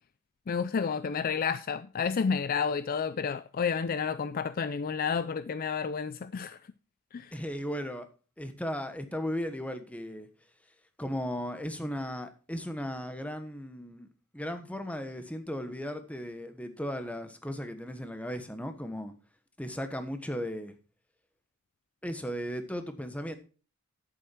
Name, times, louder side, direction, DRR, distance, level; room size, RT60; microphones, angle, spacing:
voice 1, 0.5-6.6 7.1-7.3, left 6 dB, 40° left, 0.4 m, -30 dB
voice 2, 7.3-8.1 8.4-10.3 11.0-14.1 14.3-19.1 19.6-20.7 22.0-23.4, equal, 5° left, 1.2 m, -36 dB
11.0 x 8.5 x 4.5 m
head